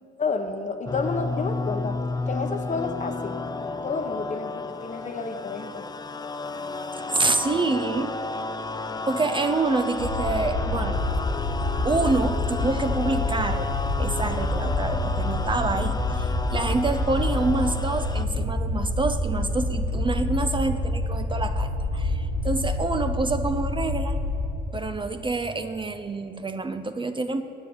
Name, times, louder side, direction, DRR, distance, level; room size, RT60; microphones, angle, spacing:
voice 1, 0.2-2.0 2.3-3.4 3.8-5.9, left 4 dB, 40° left, 7 dB, 1.0 m, -30 dB
sound 1, 0.9-18.2, left 3 dB, 20° left, 0.5 m, -32 dB
voice 2, 7.1-8.2 9.1-11.0 11.8-13.7 14.0-24.2 24.7-27.4, right 3 dB, 25° right, 8 dB, 0.6 m, -27 dB
sound 2, 10.0-24.5, left 2 dB, 90° left, 3.6 m, -27 dB
9.7 x 7.6 x 9.3 m, 2.7 s
cardioid pair, 90°, 20 cm